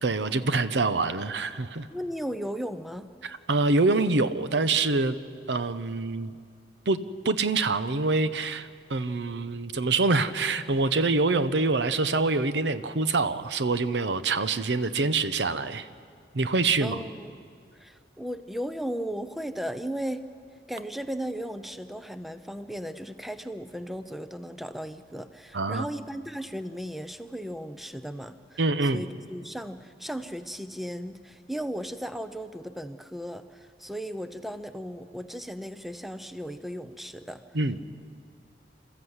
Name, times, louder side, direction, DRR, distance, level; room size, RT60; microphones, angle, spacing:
voice 1, 0.0-1.9 3.2-5.2 5.5-6.3 6.9-15.9 16.3-17.0 25.5-25.9 28.6-29.0 37.5-37.8, right 3 dB, 90° right, 12 dB, 0.8 m, -25 dB
voice 2, 1.9-3.1 16.8-17.3 17.7-20.2 20.7-28.6 28.9-37.4, equal, ahead, 10 dB, 0.6 m, -36 dB
28.0 x 14.0 x 8.0 m, 2.3 s
head